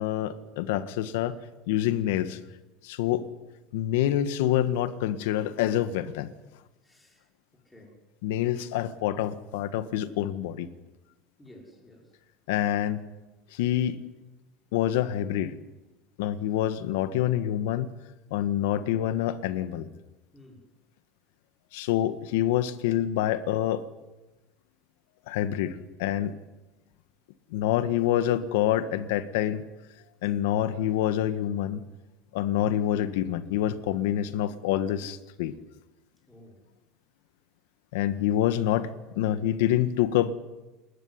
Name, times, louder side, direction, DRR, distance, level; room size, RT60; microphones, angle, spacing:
voice 1, 0.0-1.4 1.7-2.4 2.8-3.3 3.7-6.3 8.2-10.7 12.5-13.0 13.5-14.0 14.7-15.6 16.2-17.9 18.3-19.9 21.7-23.8 25.3-26.4 27.5-29.6 30.2-31.8 32.3-35.5 37.9-40.3, left 11 dB, 85° left, 12 dB, 1.7 m, -26 dB
voice 2, 6.8-8.0 11.4-12.2 20.3-20.6 30.3-30.4 32.5-32.6 36.3-36.6, left 1 dB, 5° left, 0 dB, 5.9 m, -53 dB
29.0 x 14.0 x 9.9 m, 1.1 s
cardioid pair, 160°, 0 cm